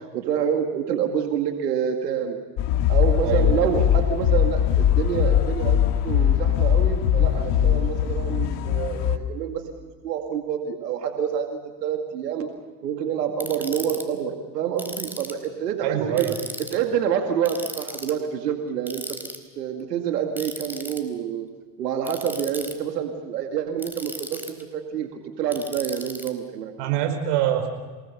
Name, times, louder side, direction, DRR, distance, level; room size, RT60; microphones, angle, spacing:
voice 1, 0.1-2.4 2.9-9.7 10.0-12.5 12.8-16.3 16.7-19.2 19.6-21.5 21.8-26.7, right 8 dB, 85° right, 4 dB, 2.3 m, -27 dB
sound 1, 2.6-9.2, left 10 dB, 60° left, 1.9 m, -21 dB
voice 2, 3.2-3.5 15.8-16.4 26.8-27.7, right 11 dB, 65° right, 6 dB, 5.3 m, -24 dB
Ratchet pawl, 13.4-14.0 14.8-15.5 16.2-16.8 17.5-18.2 18.9-19.4 20.4-21.0 22.0-22.7 23.8-24.6 25.5-26.3, right 1 dB, 5° right, 4.2 m, -36 dB
28.0 x 19.5 x 6.9 m, 1.4 s
hypercardioid pair, 75°, 47 cm